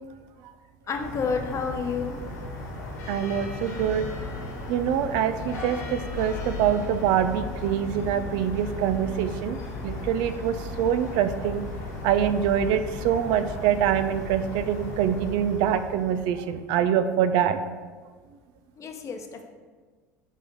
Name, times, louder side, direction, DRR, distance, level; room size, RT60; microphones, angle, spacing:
sound 1, 0.9-16.4, left 2 dB, 80° left, 2.0 m, -36 dB
voice 1, 0.9-2.2 18.8-19.4, left 5 dB, 35° left, 4 dB, 0.9 m, -30 dB
voice 2, 3.1-4.1 4.7-9.6 9.8-11.6 12.0-17.6, right 9 dB, 55° right, 11 dB, 0.4 m, -25 dB
6.3 x 3.4 x 5.3 m, 1.5 s
figure-of-eight pair, 70°, 9 cm